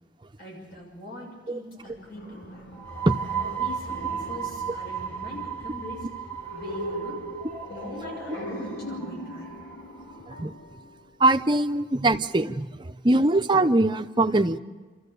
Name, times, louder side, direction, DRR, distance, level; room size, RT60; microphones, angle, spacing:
voice 1, 0.4-2.7 3.4-6.1 6.5-7.2 7.7-9.5, left 1 dB, 55° left, -1 dB, 6.5 m, -42 dB
sound 1, 1.8-11.5, equal, 90° left, 3.1 m, -40 dB
sound 2, 2.7-10.2, right 8 dB, 10° left, 1.5 m, -35 dB
voice 2, 11.2-14.6, right 2 dB, 25° right, 7 dB, 0.7 m, -22 dB
29.0 x 14.0 x 6.8 m, 1.4 s
head